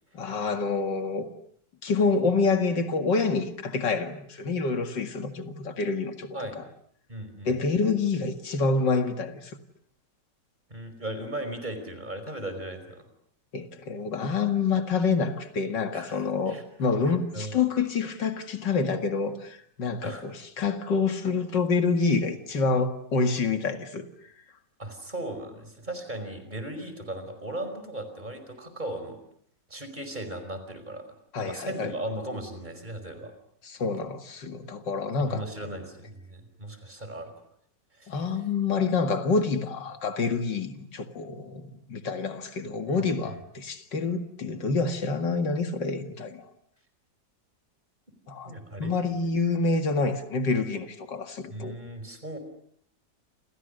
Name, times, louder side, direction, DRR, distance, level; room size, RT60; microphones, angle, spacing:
voice 1, 0.1-1.3 1.8-6.6 7.5-9.6 13.5-24.0 31.3-31.9 33.6-35.4 38.1-46.4 48.3-48.5 48.8-51.7, left 4 dB, 90° left, 2.7 m, -27 dB
voice 2, 7.1-7.6 10.7-13.1 15.9-16.6 17.0-17.6 20.0-20.3 24.8-29.2 29.7-31.0 31.4-33.3 35.2-37.4 37.9-38.2 42.9-43.0 48.4-48.9 51.5-52.4, right 1 dB, 25° right, 5.3 m, -37 dB
29.0 x 28.5 x 6.7 m
omnidirectional pair, 1.9 m